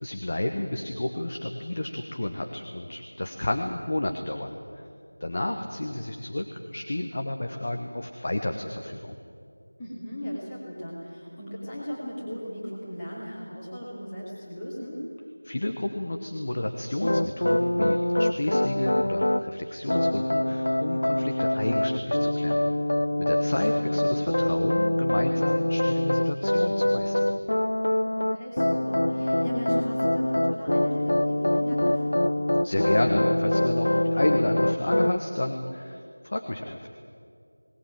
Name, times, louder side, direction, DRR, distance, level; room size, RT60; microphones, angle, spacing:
voice 1, 0.0-4.9 5.2-9.1 15.4-22.7 23.3-27.2 32.6-36.9, left 1 dB, 30° left, 4 dB, 1.1 m, -31 dB
voice 2, 9.8-15.0 23.7-24.0 28.3-32.3, equal, 10° left, -8 dB, 2.8 m, -37 dB
sound 1, 17.0-19.4 19.9-35.2, left 1 dB, 50° left, 0.7 m, -24 dB
19.5 x 18.5 x 9.1 m, 2.4 s
figure-of-eight pair, 175°, 0 cm